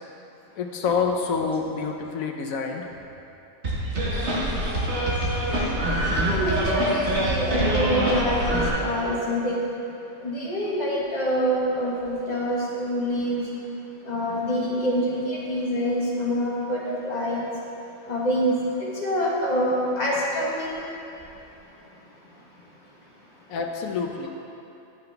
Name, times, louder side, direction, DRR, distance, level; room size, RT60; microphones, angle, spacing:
voice 1, 0.6-2.8 23.5-24.3, left 5 dB, 80° left, 3 dB, 1.1 m, -27 dB
sound 1, 3.6-8.7, right 1 dB, 55° right, 1.7 m, -24 dB
voice 2, 6.2-9.7 10.2-13.5 14.0-17.5 18.0-20.8 21.1-21.3 21.7-22.7 23.0-23.3, equal, 30° left, -6 dB, 1.4 m, -26 dB
10.5 x 5.8 x 3.4 m, 2.8 s
omnidirectional pair, 1.4 m